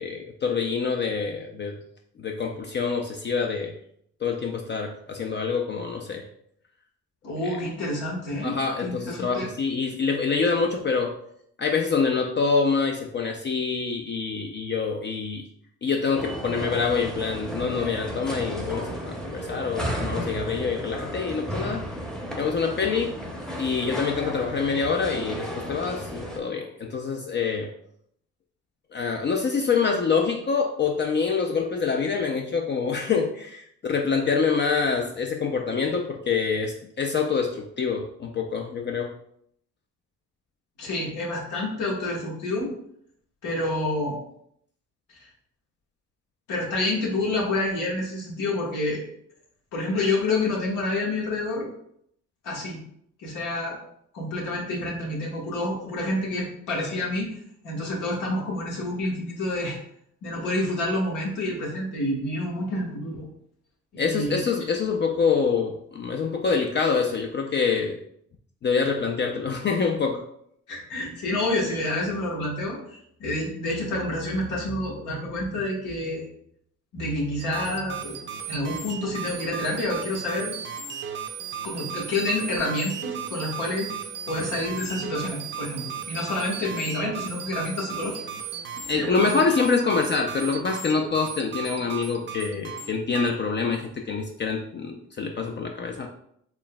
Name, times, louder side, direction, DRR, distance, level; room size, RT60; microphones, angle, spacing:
voice 1, 0.0-1.8 2.2-3.7 4.2-6.3 8.4-11.1 11.6-15.5 15.8-21.8 22.4-23.1 23.6-27.7 28.9-39.1 64.0-68.0 68.6-70.2 88.8-96.1, left 5 dB, 35° left, 2 dB, 0.4 m, -26 dB
voice 2, 7.2-9.5 40.8-42.7 43.4-44.2 45.1-45.2 46.5-49.0 49.7-51.7 52.4-52.8 53.2-53.8 54.1-57.4 57.6-59.8 60.2-63.3 63.9-64.4 70.7-76.2 76.9-78.2 78.5-80.5 81.6-83.9 84.2-88.3 88.9-89.2, left 2 dB, 85° left, -3 dB, 1.3 m, -28 dB
sound 1, 16.1-26.4, equal, ahead, 0.7 m, -34 dB
sound 2, 77.4-93.3, right 7 dB, 40° right, 0.5 m, -36 dB
4.4 x 3.2 x 2.2 m, 0.70 s
cardioid pair, 90°, 30 cm